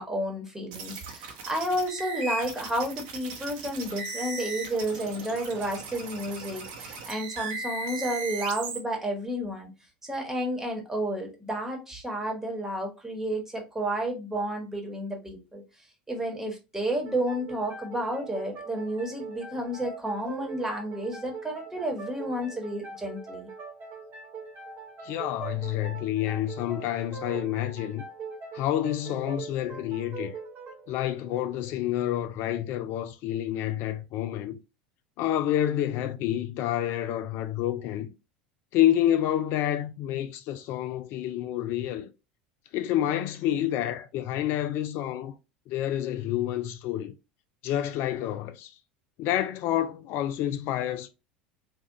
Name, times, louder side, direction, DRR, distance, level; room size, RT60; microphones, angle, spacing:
voice 1, 0.0-9.7 10.0-15.6 16.1-23.5, right 1 dB, 10° right, 1.3 m, -31 dB
sound 1, 0.7-8.8, right 3 dB, 65° right, 0.8 m, -37 dB
sound 2, 17.0-32.4, right 5 dB, 40° right, 1.1 m, -42 dB
voice 2, 25.0-28.0 28.5-30.4 30.9-34.6 35.2-38.1 38.7-42.1 42.7-45.3 45.7-47.1 47.6-48.7 49.2-51.1, left 12 dB, 55° left, 0.4 m, -28 dB
3.4 x 2.4 x 2.6 m
hypercardioid pair, 75°, 5 cm